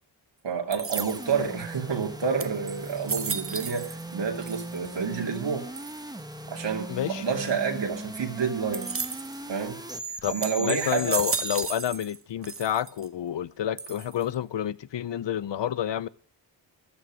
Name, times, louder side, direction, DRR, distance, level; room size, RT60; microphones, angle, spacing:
voice 1, 0.4-5.7 6.5-8.9 9.5-9.8 10.3-11.2, right 6 dB, 70° right, 2.6 m, -29 dB
sound 1, 0.7-1.5 2.0-2.1 2.4-4.1 4.4-5.0 5.8-6.2 8.7-9.4 9.9-10.1 10.4-12.2 12.4-13.1 13.8-14.3, right 5 dB, 30° right, 0.8 m, -34 dB
sound 2, 0.9-11.7, right 1 dB, 10° right, 1.2 m, -38 dB
voice 2, 6.9-7.2 10.2-10.3 10.6-16.1, left 10 dB, 70° left, 0.7 m, -29 dB
14.0 x 13.0 x 6.2 m
wide cardioid pair, 140°, 45 cm